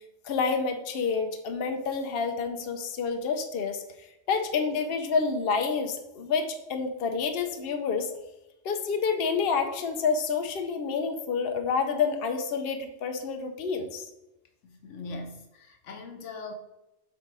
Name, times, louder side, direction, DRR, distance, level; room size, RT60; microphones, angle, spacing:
voice 1, 0.2-3.8 4.3-8.1 8.6-14.1, left 5 dB, 55° left, 5 dB, 0.9 m, -28 dB
voice 2, 14.6-16.5, left 3 dB, 85° left, 5 dB, 1.3 m, -40 dB
8.2 x 3.8 x 4.7 m, 0.94 s
omnidirectional pair, 1.2 m